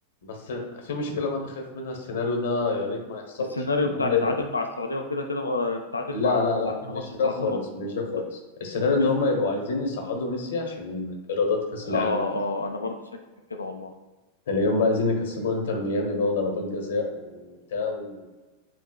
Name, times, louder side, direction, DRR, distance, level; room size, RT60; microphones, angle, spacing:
voice 1, 0.2-3.5 3.9-4.3 6.1-8.2 8.6-12.2 14.5-18.2, left 3 dB, 60° left, 1 dB, 1.0 m, -27 dB
voice 2, 3.5-6.5 6.9-7.6 11.9-13.0 13.6-13.9, left 3 dB, 80° left, 4 dB, 0.4 m, -28 dB
7.4 x 2.8 x 2.3 m, 1.2 s
figure-of-eight pair, 90°, 0 cm